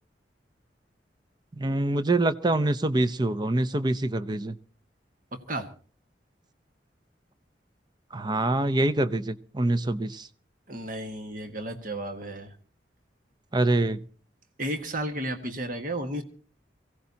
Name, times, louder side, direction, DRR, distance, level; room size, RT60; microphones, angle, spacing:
voice 1, 1.5-4.6 8.1-10.3 13.5-14.1, right 2 dB, 25° right, 13 dB, 0.6 m, -25 dB
voice 2, 5.3-5.7 10.7-12.5 14.6-16.2, right 1 dB, 50° right, 6 dB, 1.6 m, -33 dB
24.5 x 16.5 x 2.8 m, 0.39 s
head